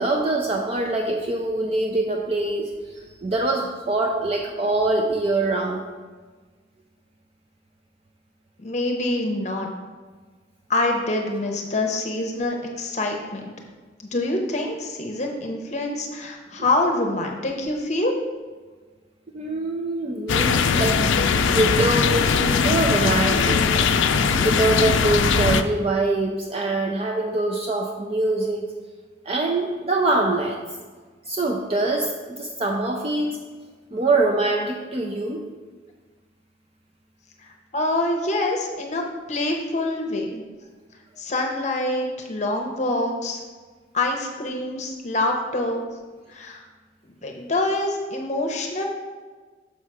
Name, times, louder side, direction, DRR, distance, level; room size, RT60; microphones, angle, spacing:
voice 1, 0.0-2.7 3.2-5.8 19.3-21.0 21.5-23.7 24.4-28.6 29.3-30.6 31.3-33.4 33.9-35.4, right 2 dB, 30° right, 2 dB, 0.5 m, -24 dB
voice 2, 8.6-9.7 10.7-13.4 14.0-18.1 37.4-40.4 41.2-43.4 43.9-45.8 46.3-46.6 47.2-48.8, left 2 dB, 40° left, 2 dB, 0.7 m, -25 dB
sound 1, 20.3-25.6, left 5 dB, 90° left, 0.4 m, -20 dB
6.6 x 5.5 x 4.8 m, 1.4 s
head